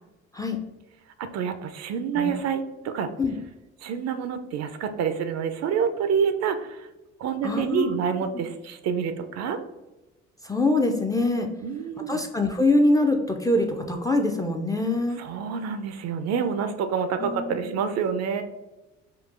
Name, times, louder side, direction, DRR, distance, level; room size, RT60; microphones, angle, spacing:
voice 1, 1.2-3.1 3.8-6.9 7.2-9.6 11.6-12.2 15.2-18.4, right 7 dB, 50° right, 9 dB, 0.4 m, -27 dB
voice 2, 7.4-8.0 10.4-11.5 12.1-15.2 17.2-17.8, left 2 dB, 10° left, 3 dB, 0.4 m, -24 dB
3.7 x 2.4 x 2.4 m, 1.0 s
hypercardioid pair, 55°, 33 cm